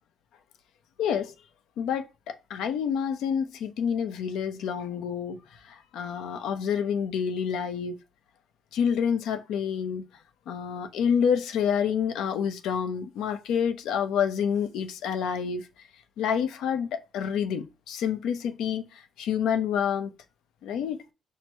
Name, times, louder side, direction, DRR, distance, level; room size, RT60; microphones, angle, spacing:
voice 1, 1.0-1.3 1.8-8.0 8.7-10.1 10.5-15.7 16.2-20.1 20.6-21.0, left 7 dB, 85° left, 0.6 m, -28 dB
4.4 x 2.1 x 4.4 m
cardioid pair, 90°, 0 cm